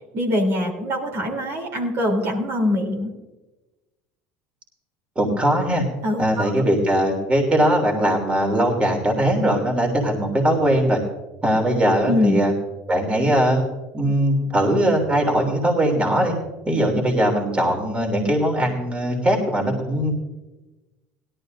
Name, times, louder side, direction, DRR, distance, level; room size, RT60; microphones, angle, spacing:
voice 1, 0.1-3.1 6.0-6.5 12.1-12.4, left 1 dB, 55° right, 0 dB, 3.4 m, -23 dB
voice 2, 5.1-5.8 6.2-11.0 11.4-12.5 12.9-13.6 13.9-16.3 16.6-20.1, right 1 dB, 20° right, 1 dB, 3.2 m, -20 dB
17.0 x 12.5 x 2.7 m, 1.1 s
supercardioid pair, 90°, 5 cm